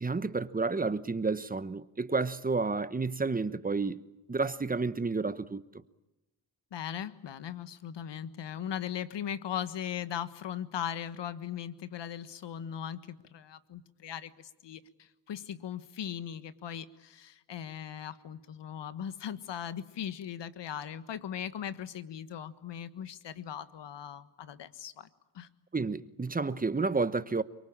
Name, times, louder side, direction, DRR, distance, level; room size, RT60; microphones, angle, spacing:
voice 1, 0.0-4.0 4.3-5.6 25.7-27.4, right 4 dB, 20° right, 1.1 m, -30 dB
voice 2, 6.7-25.1 25.3-25.5, left 9 dB, 65° left, 1.5 m, -39 dB
24.0 x 23.0 x 8.8 m
cardioid pair, 70°, 47 cm